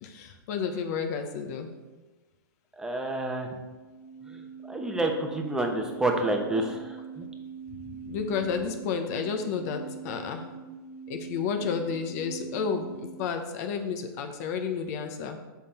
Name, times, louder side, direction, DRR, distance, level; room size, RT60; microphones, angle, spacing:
voice 1, 0.0-1.7 8.0-10.4 11.1-15.4, left 6 dB, 50° left, 6 dB, 0.9 m, -31 dB
voice 2, 2.8-3.6 4.2-7.3, right 2 dB, 5° right, 2 dB, 0.9 m, -29 dB
sound 1, 3.6-13.3, right 6 dB, 85° left, 1.1 m, -43 dB
7.5 x 5.6 x 4.3 m, 1.2 s
hypercardioid pair, 140°, 12 cm